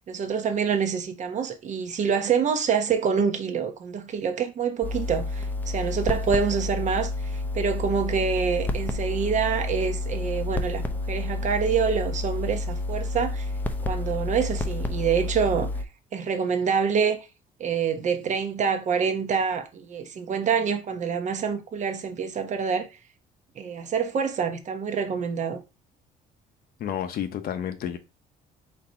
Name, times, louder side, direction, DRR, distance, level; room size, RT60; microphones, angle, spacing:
voice 1, 0.1-13.5 13.8-15.7 16.1-17.2 17.6-22.9 23.6-25.6, right 6 dB, 45° right, 0.9 m, -26 dB
sound 1, 4.8-15.8, left 2 dB, 10° left, 0.6 m, -30 dB
voice 2, 26.8-28.0, left 9 dB, 65° left, 0.9 m, -30 dB
4.3 x 2.8 x 4.4 m
cardioid pair, 110°, 17 cm